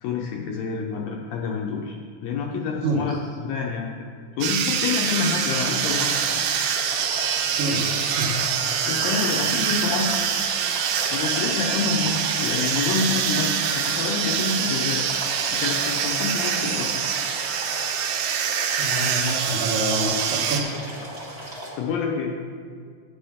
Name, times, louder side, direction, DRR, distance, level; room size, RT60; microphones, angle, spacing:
voice 1, 0.0-3.9 4.4-6.5 6.7-6.8 8.8-10.2 11.1-15.1 15.5-17.1 21.4-22.4, left 5 dB, 80° left, 0 dB, 2.1 m, -28 dB
voice 2, 2.8-3.2 7.6-8.3 18.8-20.8, right 1 dB, 65° right, -5 dB, 2.3 m, -27 dB
sound 1, 4.4-20.6, right 8 dB, 80° right, 2.7 m, -25 dB
sound 2, 5.5-21.7, right 1 dB, 50° right, 1.1 m, -36 dB
10.5 x 9.6 x 3.5 m, 2.1 s
omnidirectional pair, 4.8 m